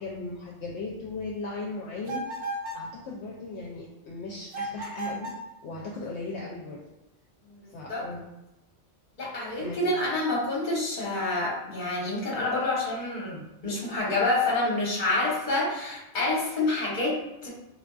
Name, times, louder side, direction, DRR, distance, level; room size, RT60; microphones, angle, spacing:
voice 1, 0.0-5.3 5.6-6.8 7.7-8.2 9.5-10.0, left 3 dB, 70° left, -3 dB, 0.8 m, -37 dB
sound 1, 2.1-2.9 4.5-5.5, right 1 dB, 80° right, 0.9 m, -34 dB
voice 2, 7.5-8.0 9.2-17.5, left 2 dB, 45° left, -4 dB, 1.0 m, -28 dB
3.7 x 2.4 x 2.3 m, 0.96 s
omnidirectional pair, 1.3 m